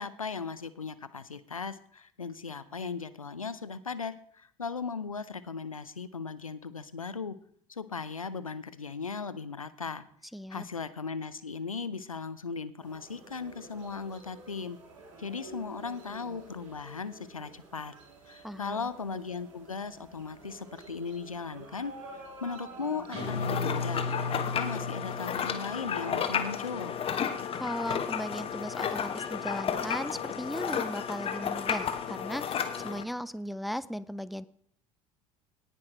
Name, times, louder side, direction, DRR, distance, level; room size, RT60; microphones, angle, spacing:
voice 1, 0.0-7.4 7.7-10.0 10.5-14.8 15.2-17.9 18.3-27.0, left 5 dB, 90° left, 15 dB, 0.6 m, -37 dB
voice 2, 10.3-10.6 18.4-18.9 27.5-34.4, equal, ahead, 16 dB, 0.5 m, -37 dB
sound 1, 12.8-24.3, right 3 dB, 65° right, 3.9 m, -49 dB
Guitar, 23.1-25.7, left 3 dB, 35° right, 5.5 m, -35 dB
sound 2, 23.2-33.0, left 7 dB, 35° left, 1.4 m, -32 dB
18.0 x 6.2 x 4.4 m, 0.63 s
figure-of-eight pair, 65°, 17 cm